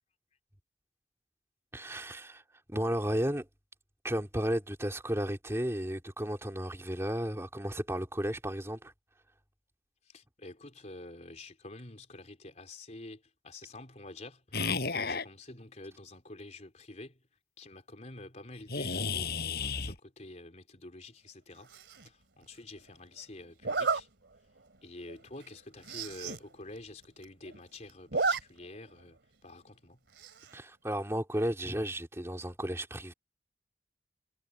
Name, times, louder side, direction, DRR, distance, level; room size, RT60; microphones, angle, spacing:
voice 1, 1.7-2.4 2.7-3.5 4.0-8.9 30.5-33.1, equal, 15° right, 3.0 m, -33 dB
voice 2, 10.0-17.2 17.6-21.7 22.0-24.1 24.8-30.0, left 2 dB, 40° left, 3.9 m, -48 dB
sound 1, 14.5-15.2 18.7-20.0, left 4 dB, 60° left, 5.6 m, -32 dB
Zipper (clothing), 21.7-22.1 23.6-24.0 24.6-24.8 25.1-25.2 25.4-25.5 25.8-26.4 26.8-26.9 27.0-27.6 27.9-28.4 28.7-28.8 30.2-30.6, right 4 dB, 85° right, 2.6 m, -32 dB
head